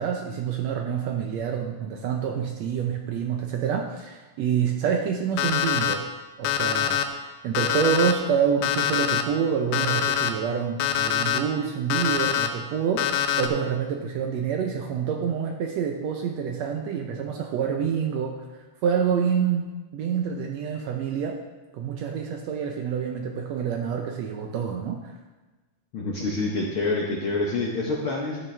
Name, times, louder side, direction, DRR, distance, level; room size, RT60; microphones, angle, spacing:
voice 1, 0.0-6.0 6.4-18.4 18.8-21.4 21.7-25.0, right 7 dB, 75° right, 2 dB, 1.6 m, -27 dB
Alarm, 5.4-5.9 6.4-7.0 7.5-8.1 8.6-9.2 9.7-10.3 10.8-11.4 11.9-12.5 13.0-13.5, left 10 dB, 85° left, 2.2 m, -24 dB
voice 2, 25.9-28.4, left 3 dB, 65° left, -3 dB, 1.4 m, -27 dB
12.5 x 8.9 x 3.3 m, 1.2 s
omnidirectional pair, 3.6 m